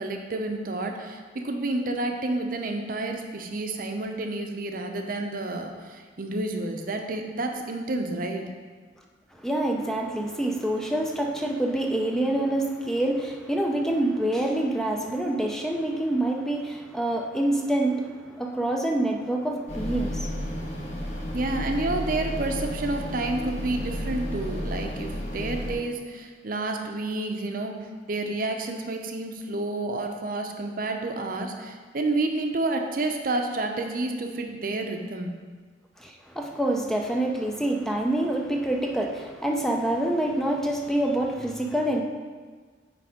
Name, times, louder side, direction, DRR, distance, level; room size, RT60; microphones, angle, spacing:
voice 1, 0.0-8.5 21.3-35.3, right 2 dB, 55° right, 4 dB, 0.7 m, -30 dB
voice 2, 9.4-20.4 36.0-42.0, right 1 dB, 5° left, 1 dB, 0.5 m, -26 dB
sound 1, 19.7-25.7, equal, 40° left, 1.3 m, -32 dB
8.7 x 3.4 x 5.0 m, 1.5 s
head